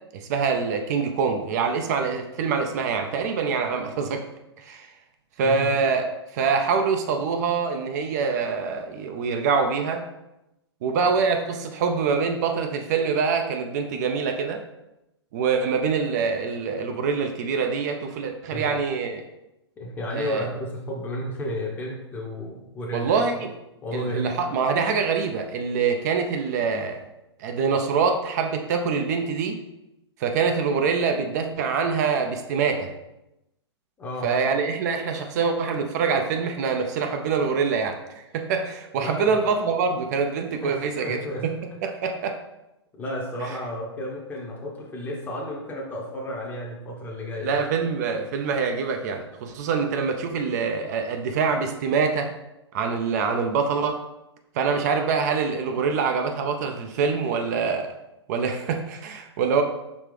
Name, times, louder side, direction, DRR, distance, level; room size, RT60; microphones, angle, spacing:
voice 1, 0.1-4.2 4.6-4.9 5.4-6.1 6.3-10.0 10.8-14.6 15.3-19.2 20.1-20.5 22.9-23.5 23.9-27.0 27.4-29.6 30.2-32.9 34.2-41.5 41.8-42.4 43.4-43.6 47.4-52.3 52.7-54.0 54.5-57.9 58.3-59.6, right 5 dB, 40° right, 5 dB, 0.5 m, -25 dB
voice 2, 19.8-23.2 23.8-24.3 34.0-34.3 39.0-39.4 40.6-41.5 43.0-47.5, left 1 dB, 15° left, -2 dB, 0.7 m, -32 dB
5.2 x 3.2 x 3.2 m, 0.92 s
figure-of-eight pair, 110°, 14 cm